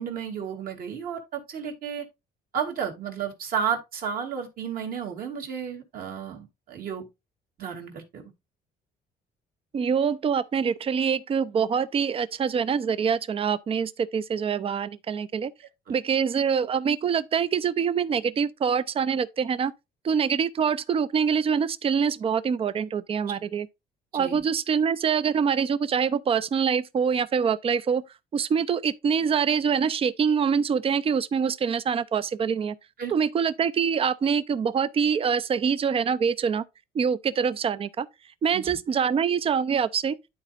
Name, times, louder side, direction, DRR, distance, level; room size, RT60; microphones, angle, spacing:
voice 1, 0.0-2.1 2.5-7.1 7.6-8.3 15.9-16.0 24.1-24.4 33.0-33.1 38.5-38.8, right 7 dB, 60° right, 2.4 m, -32 dB
voice 2, 9.7-15.5 15.9-19.7 20.0-23.7 24.1-28.0 28.3-32.7 33.1-36.6 36.9-38.1 38.4-40.2, right 6 dB, 35° right, 0.5 m, -25 dB
12.0 x 4.2 x 2.5 m
cardioid pair, 110°, 17 cm